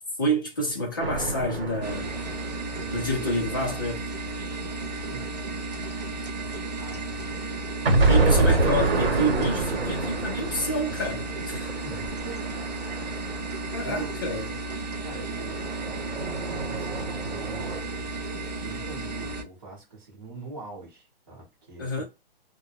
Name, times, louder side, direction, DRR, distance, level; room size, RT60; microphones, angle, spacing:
voice 1, 0.2-2.1 2.9-4.1 8.0-11.7 13.7-14.5 21.8-22.0, equal, 20° left, 0.5 m, -28 dB
sound 1, 1.0-3.8 7.9-14.1 15.4-17.8, right 3 dB, 80° right, 1.1 m, -27 dB
sound 2, 1.8-19.4, right 2 dB, 45° right, 0.5 m, -34 dB
voice 2, 2.7-3.4 5.1-5.4 6.8-7.3 11.8-12.7 13.8-14.2 15.0-16.2 16.7-18.1 18.6-22.0, right 3 dB, 20° right, 1.0 m, -43 dB
2.2 x 2.1 x 3.3 m
hypercardioid pair, 175°, 30 cm